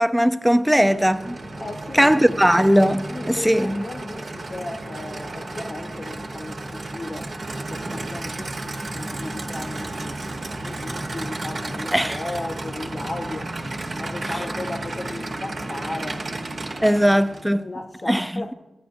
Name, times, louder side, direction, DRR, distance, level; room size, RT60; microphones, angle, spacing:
voice 1, 0.0-1.4 2.0-3.8 11.9-12.2 16.8-17.6 18.1-18.3, equal, 5° right, 0.4 m, -18 dB
Aircraft / Idling, 0.6-17.6, right 2 dB, 70° right, 1.0 m, -33 dB
voice 2, 1.6-2.4 3.1-7.4 7.7-10.2 10.6-13.6 13.9-16.3 16.7-18.5, left 2 dB, 45° left, 0.6 m, -36 dB
14.0 x 9.8 x 2.6 m
cardioid pair, 55°, 0 cm